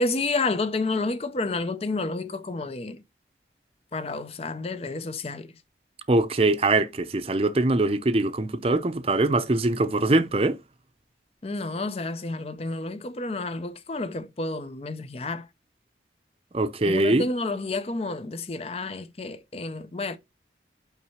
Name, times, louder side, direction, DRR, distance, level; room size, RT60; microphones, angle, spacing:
voice 1, 0.0-3.0 3.9-5.6 11.4-15.5 16.8-20.2, left 2 dB, 35° left, 0.5 m, -30 dB
voice 2, 6.1-10.6 16.5-17.2, right 2 dB, 30° right, 0.6 m, -22 dB
5.8 x 4.3 x 5.6 m
head